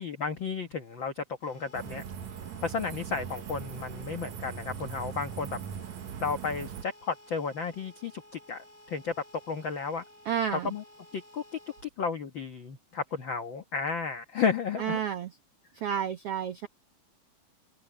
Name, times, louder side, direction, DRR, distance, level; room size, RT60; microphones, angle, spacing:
voice 1, 0.0-2.0 2.6-5.6 6.2-9.1 9.5-10.0 10.6-10.8 11.1-11.4 12.0-15.0, left 5 dB, 85° left, 1.0 m, -33 dB
sound 1, 1.4-11.8, left 1 dB, 40° left, 7.7 m, -55 dB
sound 2, 1.7-6.8, right 8 dB, 65° right, 2.2 m, -40 dB
voice 2, 10.2-10.7 14.8-15.3 15.7-16.7, right 8 dB, 85° right, 1.3 m, -31 dB
open air
omnidirectional pair, 4.1 m